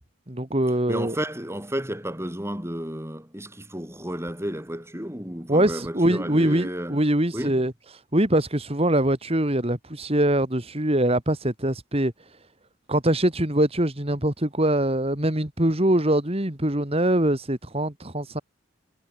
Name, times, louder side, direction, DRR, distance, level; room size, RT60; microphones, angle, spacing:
voice 1, 0.3-1.2 5.5-12.1 12.9-18.4, right 1 dB, 30° right, 2.4 m, -23 dB
voice 2, 0.9-7.0 7.3-7.6, equal, 15° right, 7.7 m, -32 dB
head